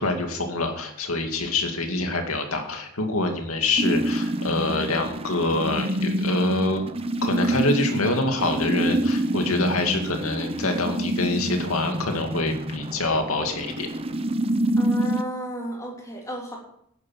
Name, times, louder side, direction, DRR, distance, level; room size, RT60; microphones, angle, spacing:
voice 1, 0.0-6.8 7.2-13.9, left 2 dB, 85° left, 4 dB, 2.3 m, -25 dB
sound 1, 3.8-15.2, right 1 dB, 25° right, 0.7 m, -27 dB
voice 2, 14.8-16.6, right 1 dB, 15° left, -2 dB, 3.3 m, -33 dB
11.0 x 9.5 x 5.9 m, 0.70 s
head